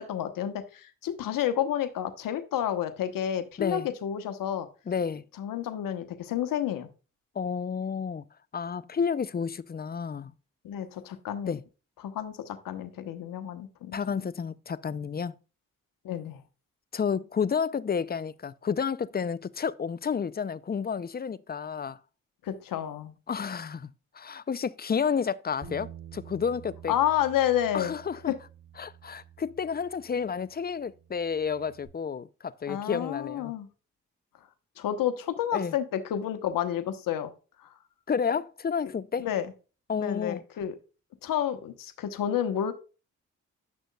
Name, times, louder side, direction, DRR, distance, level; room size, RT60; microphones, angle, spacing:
voice 1, 0.0-4.7 5.4-6.9 10.6-11.5 12.0-14.3 16.0-16.4 22.4-23.1 26.9-28.0 28.3-28.4 32.7-33.7 34.8-37.3 37.6-37.7 39.2-39.5 40.0-40.7 41.2-42.7, left 10 dB, 75° left, 1.0 m, -30 dB
voice 2, 4.9-5.2 7.4-8.2 8.5-10.3 11.4-11.6 13.9-15.4 16.9-22.0 23.3-26.9 27.7-28.3 28.8-33.5 35.5-35.7 38.1-39.3 39.9-40.4, left 6 dB, 30° left, 0.5 m, -31 dB
Bass guitar, 25.6-31.9, right 8 dB, 60° right, 3.6 m, -49 dB
9.6 x 6.3 x 2.3 m
supercardioid pair, 45°, 33 cm